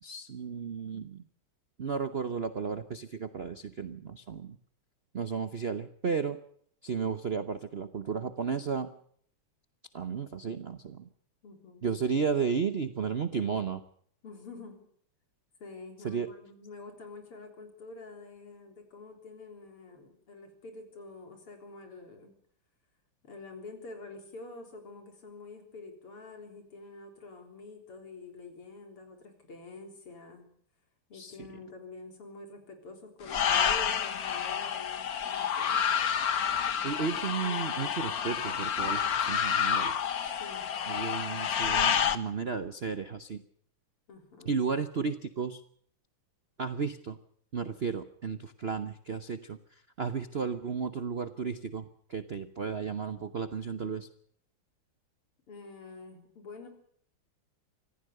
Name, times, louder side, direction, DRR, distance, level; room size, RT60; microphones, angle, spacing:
voice 1, 0.0-1.2 1.8-4.6 5.1-6.4 6.8-8.9 9.9-11.1 11.8-13.8 16.0-16.3 31.1-31.5 36.8-40.0 40.9-43.4 44.4-45.6 46.6-47.2 47.5-54.1, right 6 dB, 55° right, 11 dB, 0.6 m, -33 dB
voice 2, 11.4-11.9 14.2-14.8 15.6-22.3 23.2-30.5 31.1-35.9 36.3-37.9 40.2-40.7 44.1-44.5 55.5-56.7, left 3 dB, 80° left, 5 dB, 4.7 m, -47 dB
sound 1, 33.3-42.2, left 8 dB, 50° left, 1.3 m, -29 dB
25.0 x 15.5 x 6.6 m, 0.62 s
omnidirectional pair, 2.4 m